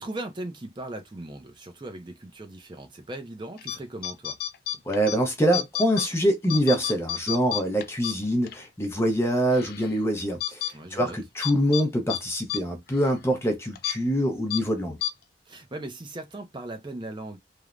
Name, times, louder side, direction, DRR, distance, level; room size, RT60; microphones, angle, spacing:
voice 1, 0.0-4.4 10.7-11.2 15.5-17.4, right 2 dB, 25° right, 0.4 m, -38 dB
sound 1, 3.6-3.8 4.0-5.2 5.5-6.1 6.4-8.6 9.0-9.1 9.5-9.9 10.4-10.7 11.4-11.8 12.1-12.2 12.5-12.6 12.9-13.1 13.8-14.0 14.5-14.6 15.0-15.1, left 11 dB, 55° left, 0.3 m, -30 dB
voice 2, 4.9-10.6 10.9-15.0, equal, 15° left, 0.6 m, -25 dB
3.1 x 2.1 x 2.4 m
head